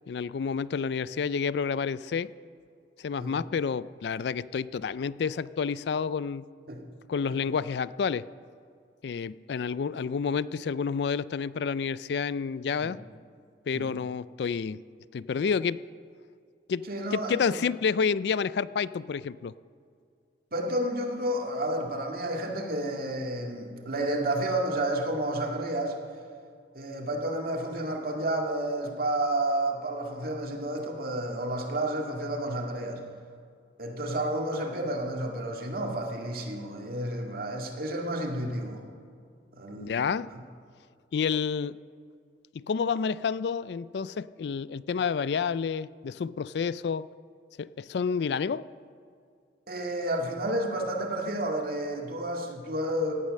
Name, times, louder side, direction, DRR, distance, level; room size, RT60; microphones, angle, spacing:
voice 1, 0.1-2.3 3.0-6.5 7.1-8.3 9.0-13.0 13.7-14.8 15.1-15.8 16.7-19.5 39.8-40.3 41.1-41.8 42.5-47.1 47.6-48.7, left 6 dB, 65° left, 18 dB, 0.4 m, -29 dB
voice 2, 16.9-17.6 20.5-26.0 26.7-33.0 33.8-38.8 39.5-40.1 49.7-53.1, right 1 dB, 55° right, 1 dB, 2.1 m, -31 dB
17.5 x 12.0 x 6.5 m, 2.3 s
head